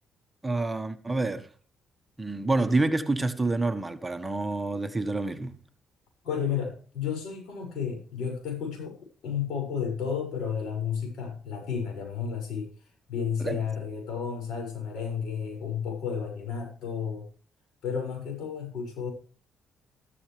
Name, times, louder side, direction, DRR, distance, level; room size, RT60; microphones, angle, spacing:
voice 1, 0.4-1.5 2.2-5.6 13.4-13.6, right 2 dB, 15° right, 1.3 m, -27 dB
voice 2, 6.2-12.7 13.1-17.3 17.8-19.1, left 7 dB, 80° left, 6.7 m, -32 dB
14.0 x 13.0 x 3.4 m
cardioid pair, 90°, 0 cm